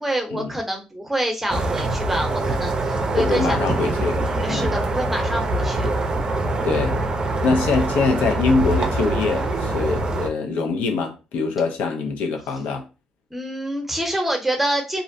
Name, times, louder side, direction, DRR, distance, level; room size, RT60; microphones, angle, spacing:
voice 1, 0.0-3.6 4.2-5.9 13.3-15.0, right 1 dB, 5° right, 0.8 m, -26 dB
sound 1, 1.5-10.3, right 2 dB, 35° right, 0.5 m, -24 dB
voice 2, 3.1-4.7 6.6-7.0 7.4-12.9, left 4 dB, 85° left, 0.5 m, -23 dB
2.5 x 2.0 x 2.6 m
cardioid pair, 80°, 3 cm